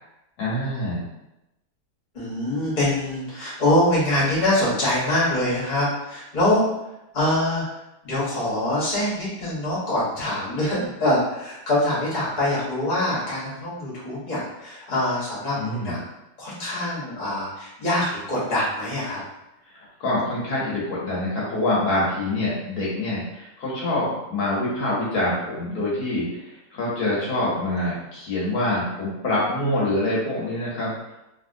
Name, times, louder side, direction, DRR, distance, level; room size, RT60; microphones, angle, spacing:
voice 1, 0.4-1.0 15.6-16.0 20.0-26.3 26.7-30.9, left 1 dB, 65° left, -6 dB, 1.3 m, -25 dB
voice 2, 2.1-6.7 7.1-16.0 16.4-19.2, left 1 dB, 30° left, -7 dB, 1.0 m, -24 dB
3.0 x 2.8 x 2.5 m, 0.90 s
omnidirectional pair, 1.9 m